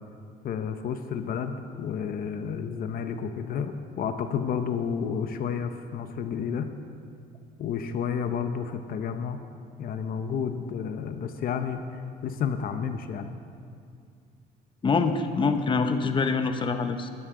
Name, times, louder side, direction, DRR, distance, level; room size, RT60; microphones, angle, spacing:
voice 1, 0.4-6.7 7.6-9.4 9.8-13.3, left 7 dB, 60° left, 8 dB, 0.8 m, -31 dB
voice 2, 14.8-17.1, left 4 dB, 30° left, 7 dB, 0.9 m, -25 dB
20.0 x 12.5 x 3.8 m, 2.3 s
cardioid pair, 110°, 17 cm